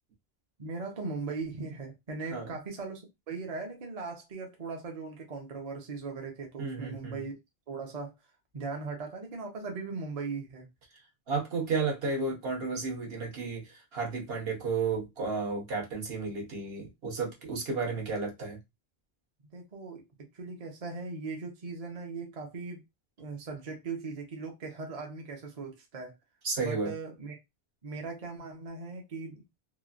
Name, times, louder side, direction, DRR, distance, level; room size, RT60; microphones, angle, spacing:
voice 1, 0.6-7.4 7.7-8.1 8.5-10.7 19.5-22.8 23.2-26.1 26.6-27.4 27.8-29.4, right 4 dB, 40° right, 0.7 m, -39 dB
voice 2, 6.6-7.2 11.3-18.6 26.4-26.9, right 4 dB, 70° right, 1.1 m, -32 dB
3.0 x 2.2 x 2.4 m
omnidirectional pair, 1.0 m